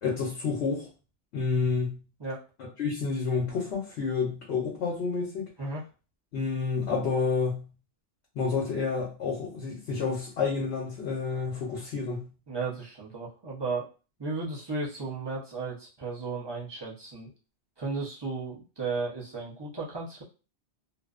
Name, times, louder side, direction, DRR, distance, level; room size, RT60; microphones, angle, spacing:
voice 1, 0.0-0.9 1.3-2.0 2.8-5.5 6.3-7.7 8.4-12.3, left 4 dB, 80° left, -2 dB, 0.9 m, -29 dB
voice 2, 12.5-13.9 14.2-17.3 17.8-20.2, right 3 dB, 30° right, -5 dB, 0.6 m, -34 dB
2.6 x 2.0 x 2.4 m, 0.34 s
omnidirectional pair, 1.1 m